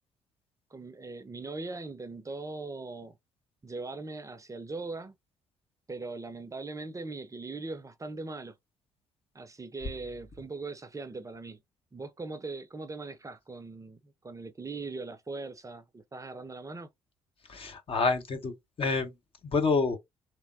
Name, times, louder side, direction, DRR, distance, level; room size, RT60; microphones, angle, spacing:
voice 1, 0.7-3.2 3.6-5.2 5.9-8.5 9.3-11.6 11.9-16.9, right 3 dB, 20° right, 0.7 m, -40 dB
voice 2, 17.5-19.1 19.4-20.0, left 4 dB, 40° left, 1.0 m, -28 dB
3.4 x 2.9 x 2.5 m
figure-of-eight pair, 45°, 14 cm